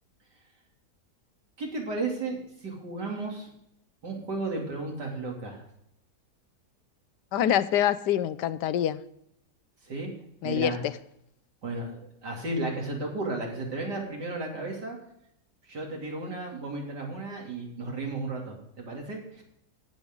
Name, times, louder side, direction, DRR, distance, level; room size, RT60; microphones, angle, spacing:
voice 1, 1.6-3.5 4.0-5.6 9.8-10.1 10.4-10.8 11.6-15.0 15.7-19.4, right 2 dB, 85° right, -1 dB, 3.5 m, -34 dB
voice 2, 7.3-9.0 10.4-10.9, left 11 dB, 85° left, 14 dB, 1.3 m, -25 dB
16.5 x 7.7 x 3.8 m, 0.74 s
omnidirectional pair, 1.8 m